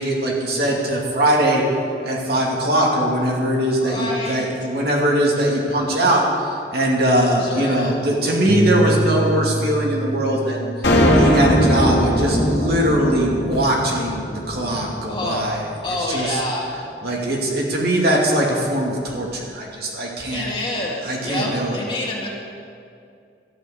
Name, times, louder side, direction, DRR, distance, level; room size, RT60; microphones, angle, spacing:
voice 1, 0.0-1.6 2.0-10.7 11.1-15.7 16.1-16.4 17.0-20.5 21.0-21.8, right 1 dB, 60° right, -2 dB, 2.6 m, -21 dB
voice 2, 3.8-4.5 7.4-8.0 15.1-15.5 15.8-16.7 20.3-22.3, left 1 dB, 30° left, -3 dB, 2.4 m, -27 dB
Bass guitar, 8.5-13.0 13.3-14.7, right 2 dB, 30° right, 0.4 m, -28 dB
sound 1, 10.8-15.3, equal, 65° left, 2.1 m, -19 dB
12.5 x 7.9 x 9.5 m, 2.4 s
head